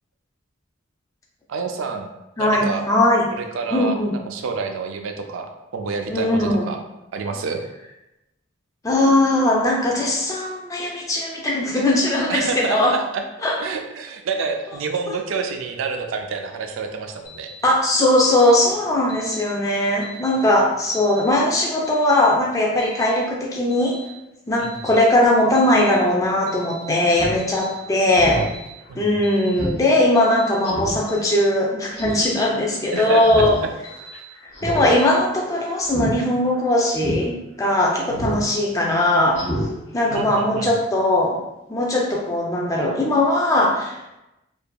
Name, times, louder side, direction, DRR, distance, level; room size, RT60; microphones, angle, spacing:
voice 1, 1.5-2.1 2.4-2.9 3.3-4.0 4.3-6.8 7.1-7.6 12.3-13.2 13.6-17.5 24.6-24.7 28.9-29.2 32.9-33.7 34.1-34.2 38.1-38.3 40.1-40.7, right 5 dB, 80° right, 4 dB, 0.4 m, -28 dB
voice 2, 2.4-3.3 3.7-4.2 6.1-6.7 8.8-12.9 13.4-13.6 17.6-24.0 24.5-28.4 28.9-33.6 34.6-39.4 39.9-41.4 41.7-44.0, left 1 dB, 15° left, -2 dB, 0.4 m, -19 dB
Alarm, 17.2-17.6 18.2-18.5 19.1-19.4 20.0-20.4 20.9-21.3 21.8-22.2 22.8-23.1 23.7-24.1 24.6-25.0 25.5-25.9 26.5-26.8 27.4-27.7 28.3-28.7 29.2-29.6 30.1-30.5 31.1-31.4 32.0-32.3 32.9-33.3 33.8-34.2 34.8-35.1, left 2 dB, 80° left, 1.1 m, -42 dB
Speech synthesizer, 27.1-27.3 27.7-27.8 28.1-28.5 28.9-29.0 29.6-29.8 30.1-30.2 30.6-31.0 31.9-32.3 33.2-33.6 33.9-34.0 34.5-34.9 35.2-35.4 35.8-36.1 36.5-36.6 37.0-37.2 38.1-38.4 38.8-38.9 39.3-39.7 40.0-40.1, equal, 55° left, 0.8 m, -27 dB
2.8 x 2.5 x 2.2 m, 0.94 s
head